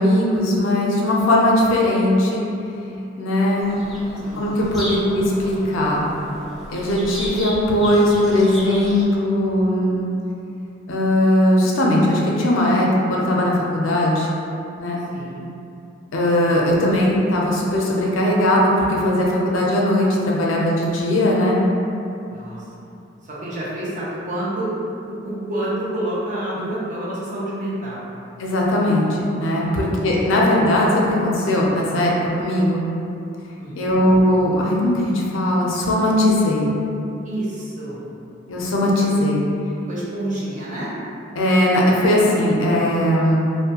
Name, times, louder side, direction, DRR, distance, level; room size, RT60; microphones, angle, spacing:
voice 1, 0.0-2.4 3.2-3.7 4.3-6.0 6.7-10.1 10.9-14.3 14.8-15.0 16.1-21.6 28.4-32.1 32.4-32.9 33.7-36.7 38.5-39.4 41.4-43.4, left 1 dB, 90° left, -3 dB, 0.5 m, -19 dB
Bird vocalization bird call bird song, 3.6-9.0, equal, ahead, 0.4 m, -34 dB
voice 2, 4.2-4.6 15.1-15.4 22.3-22.9 23.2-24.7 25.2-28.1 29.6-29.9 33.6-34.0 37.2-38.0 39.9-40.9, right 1 dB, 40° right, -8 dB, 0.6 m, -29 dB
2.5 x 2.1 x 2.7 m, 2.7 s
head